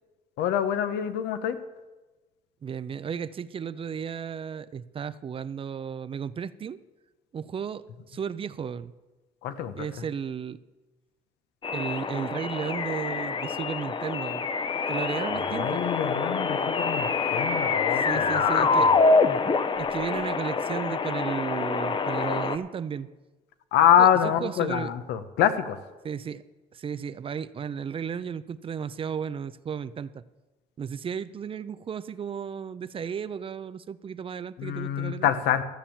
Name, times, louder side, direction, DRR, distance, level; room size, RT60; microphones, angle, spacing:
voice 1, 0.4-1.6 9.4-9.9 15.6-18.9 23.7-25.8 34.6-35.6, left 10 dB, 85° left, 10 dB, 1.0 m, -25 dB
voice 2, 2.6-6.8 7.3-8.9 9.7-10.6 11.7-14.5 14.9-15.8 18.0-18.9 19.8-23.1 24.0-24.9 26.0-26.4 26.7-30.2 30.8-35.3, right 7 dB, 30° right, 15 dB, 0.5 m, -34 dB
sound 1, 11.6-22.6, left 4 dB, 30° left, 0.7 m, -26 dB
13.5 x 7.2 x 7.2 m, 1.2 s
cardioid pair, 110°, 17 cm